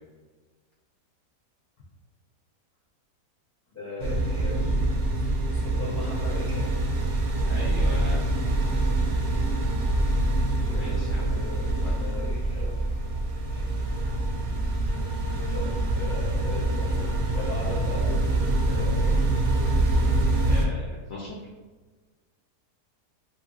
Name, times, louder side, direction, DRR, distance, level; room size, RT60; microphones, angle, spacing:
voice 1, 3.7-6.7 10.6-11.7 12.0-12.7 13.5-13.7 15.5-19.4, left 2 dB, 15° left, -7 dB, 0.7 m, -38 dB
sound 1, 4.0-20.7, right 2 dB, 70° right, 0.9 m, -25 dB
voice 2, 7.4-8.3 10.7-11.2 11.8-12.0 20.5-21.4, left 2 dB, 70° left, -4 dB, 0.7 m, -38 dB
3.1 x 2.6 x 2.3 m, 1.3 s
omnidirectional pair, 1.8 m